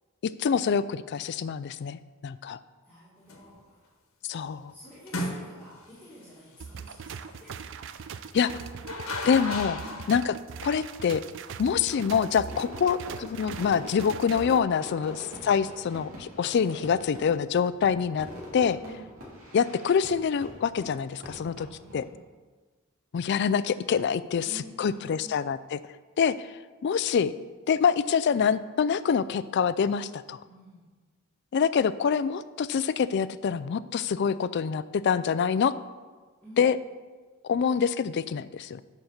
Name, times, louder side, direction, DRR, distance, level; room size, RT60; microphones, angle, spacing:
voice 1, 0.2-2.6 4.3-4.7 8.3-8.5 9.3-9.8 10.1-10.3 10.6-11.2 11.6-18.3 18.5-18.8 19.5-21.7 21.9-22.0 23.1-25.8 26.2-26.5 26.8-27.3 27.7-30.4 31.5-35.7 36.6-36.8 37.4-38.8, left 7 dB, 55° left, 15 dB, 0.3 m, -26 dB
voice 2, 2.9-3.9 4.3-4.4 4.7-7.6 9.8-10.1 12.5-12.7 18.8-19.1 21.2-22.2 24.4-25.5 30.4-30.9 36.4-36.7, right 1 dB, 10° left, -10 dB, 1.9 m, -50 dB
sound 1, 3.3-3.6 5.1-5.9 8.4-10.2, left 2 dB, 75° left, 1.2 m, -34 dB
sound 2, 6.6-14.6, right 6 dB, 60° right, 0.4 m, -41 dB
Fireworks, 12.5-22.0, equal, 90° right, 3.0 m, -44 dB
7.0 x 5.9 x 6.4 m, 1.4 s
head